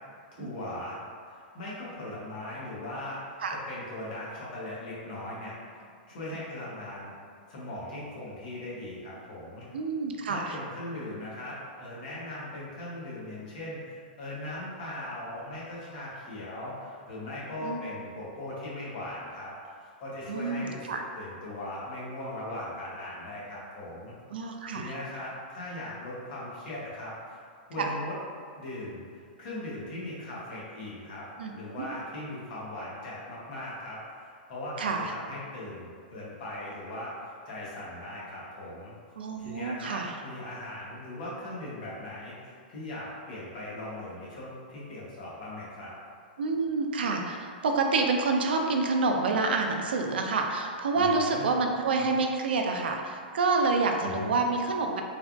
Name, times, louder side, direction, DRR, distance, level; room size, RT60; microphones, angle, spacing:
voice 1, 0.3-1.0 1.3-3.2 3.7-5.5 6.1-7.1 7.5-9.7 10.3-19.5 19.8-24.1 24.7-27.4 27.7-28.1 28.6-29.0 29.4-38.9 39.4-45.9 50.9-51.6 54.0-54.4, left 1 dB, 60° left, -7 dB, 1.1 m, -39 dB
voice 2, 9.7-10.6 17.6-17.8 20.3-21.0 24.3-24.9 27.8-27.9 31.4-31.5 31.8-31.9 34.8-35.1 39.2-40.1 46.4-55.0, right 3 dB, 85° right, 3 dB, 0.4 m, -28 dB
3.3 x 2.2 x 2.5 m, 2.2 s
hypercardioid pair, 140°, 5 cm